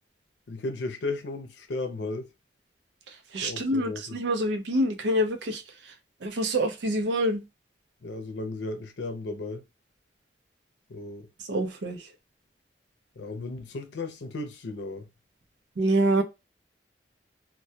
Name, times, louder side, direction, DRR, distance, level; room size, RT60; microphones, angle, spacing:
voice 1, 0.5-2.3 3.4-4.2 8.0-9.6 10.9-11.3 13.2-15.1, left 2 dB, 85° left, 0.6 m, -35 dB
voice 2, 3.1-5.9 6.2-7.4 11.4-12.1 15.8-16.2, right 1 dB, 85° right, 0.6 m, -26 dB
2.2 x 2.2 x 2.7 m
head